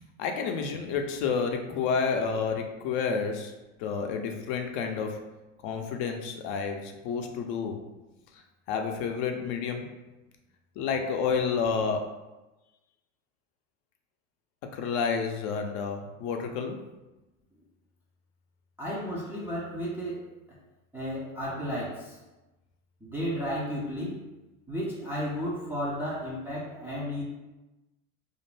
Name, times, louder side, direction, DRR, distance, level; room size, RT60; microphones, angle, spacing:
voice 1, 0.2-3.5 3.8-5.2 5.6-7.8 8.3-8.4 8.7-9.9 10.8-12.1 14.7-16.8, left 5 dB, 55° left, 4 dB, 0.5 m, -30 dB
voice 2, 18.8-20.6 20.9-22.2 23.0-24.2 24.7-27.2, equal, 5° right, -7 dB, 0.3 m, -33 dB
2.4 x 2.1 x 3.1 m, 1.0 s
hypercardioid pair, 95°, 41 cm